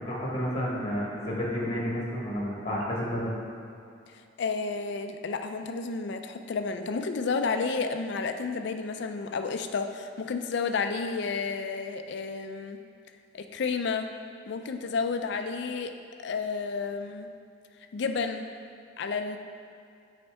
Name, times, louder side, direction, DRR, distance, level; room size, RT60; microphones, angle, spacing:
voice 1, 0.0-3.4, equal, 30° left, -4 dB, 1.4 m, -31 dB
voice 2, 4.1-12.8 13.3-14.1 14.5-15.9 16.2-17.3 17.9-18.4 19.0-19.4, left 4 dB, 60° left, 7 dB, 0.4 m, -31 dB
7.9 x 4.3 x 3.5 m, 2.5 s
head